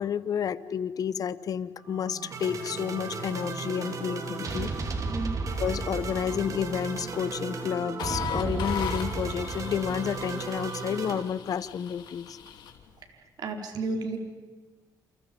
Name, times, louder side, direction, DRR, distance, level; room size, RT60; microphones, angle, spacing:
voice 1, 0.0-4.7 5.6-12.4, left 8 dB, 55° left, 16 dB, 1.2 m, -30 dB
sound 1, 1.9-11.2, right 3 dB, 50° right, 3.7 m, -34 dB
sound 2, 8.0-12.8, left 9 dB, 80° left, 3.2 m, -38 dB
voice 2, 13.1-14.2, right 3 dB, 65° right, 4 dB, 4.5 m, -33 dB
30.0 x 29.5 x 5.4 m, 1.4 s
cardioid pair, 100°, 7 cm